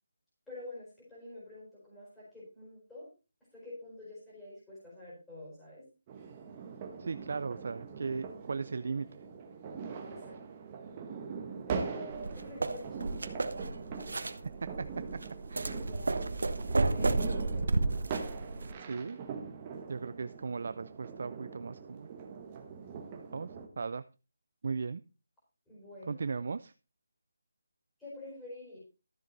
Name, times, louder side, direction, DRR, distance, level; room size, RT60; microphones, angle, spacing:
voice 1, 0.5-3.1 3.5-5.8 10.0-10.6 11.7-13.4 13.7-13.9 15.6-16.3 16.9-17.9 25.7-26.2 28.0-28.8, left 1 dB, 5° left, -9 dB, 4.5 m, -47 dB
sound 1, 6.1-23.7, right 5 dB, 15° right, 1.1 m, -42 dB
voice 2, 7.0-9.1 14.1-14.3 15.5-15.7 18.8-19.2 19.9-22.1 23.3-24.1 24.6-25.0 26.1-26.7, right 4 dB, 40° right, 14 dB, 0.4 m, -37 dB
sound 2, 12.1-18.7, right 3 dB, 70° right, 1.3 m, -32 dB
13.5 x 7.5 x 3.9 m, 0.31 s
hypercardioid pair, 180°, 0 cm